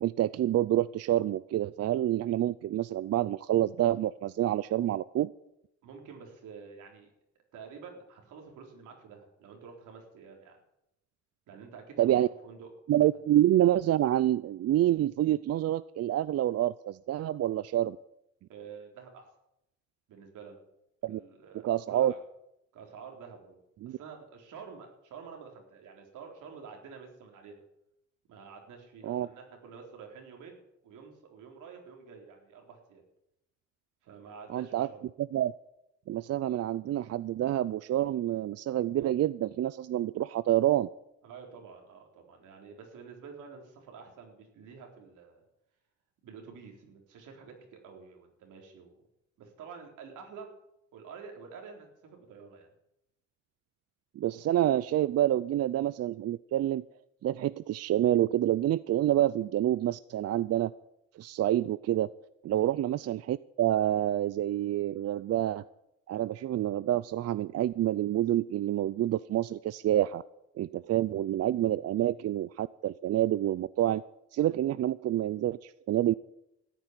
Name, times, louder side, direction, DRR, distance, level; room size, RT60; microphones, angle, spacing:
voice 1, 0.0-5.3 12.0-12.3 12.9-18.0 21.0-21.2 21.6-22.1 23.8-24.0 29.0-29.3 34.5-34.9 35.2-35.5 36.1-40.9 54.2-56.8 57.2-60.7 61.2-62.1 62.4-65.6 66.1-70.2 70.6-74.0 74.3-76.1, right 13 dB, 55° right, 17 dB, 0.5 m, -27 dB
voice 2, 5.8-7.1 7.5-10.6 11.5-12.7 18.5-19.3 20.1-20.6 21.0-22.2 22.7-23.6 23.9-27.6 28.3-33.0 34.0-35.0 41.2-45.4 46.2-47.5 47.8-48.9 49.4-50.5 50.9-52.7 62.5-62.7, right 5 dB, 85° right, 2 dB, 3.9 m, -49 dB
14.0 x 8.7 x 9.8 m, 0.83 s
cardioid pair, 90°, 30 cm